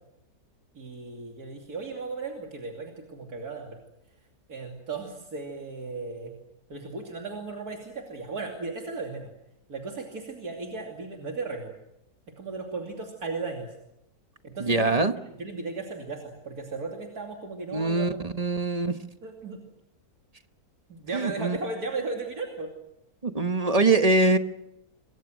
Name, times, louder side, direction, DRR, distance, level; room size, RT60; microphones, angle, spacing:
voice 1, 0.7-3.8 4.5-6.3 6.7-9.3 9.7-11.7 12.4-13.7 14.4-14.9 15.2-18.1 19.2-19.6 20.9-22.7, right 3 dB, 75° right, 1 dB, 3.2 m, -36 dB
voice 2, 14.6-15.1 17.7-18.9 21.1-21.6 23.2-24.4, right 3 dB, 25° right, 8 dB, 1.1 m, -23 dB
27.0 x 23.5 x 6.3 m, 0.82 s
omnidirectional pair, 1.6 m